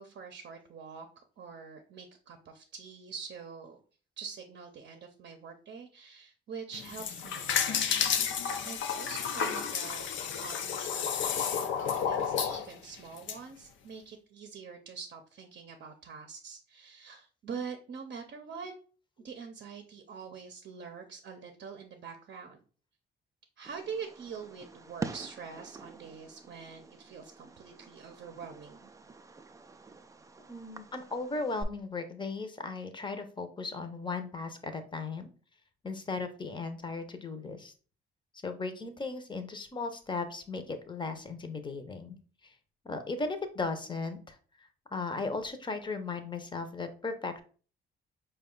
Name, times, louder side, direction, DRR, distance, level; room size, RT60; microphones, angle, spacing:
voice 1, 0.0-3.8 4.2-7.9 8.6-18.7 19.2-22.6 23.6-28.9, right 6 dB, 55° right, 5 dB, 0.6 m, -45 dB
sound 1, 6.7-13.4, left 7 dB, 70° left, 0.5 m, -31 dB
Fireworks, 23.6-31.6, right 4 dB, 15° right, 0.3 m, -46 dB
voice 2, 30.5-35.3 35.8-37.7 38.4-42.2 42.4-42.5 42.8-47.4, left 3 dB, 25° left, 8 dB, 0.7 m, -37 dB
4.7 x 2.3 x 3.7 m, 0.40 s
cardioid pair, 90°, 20 cm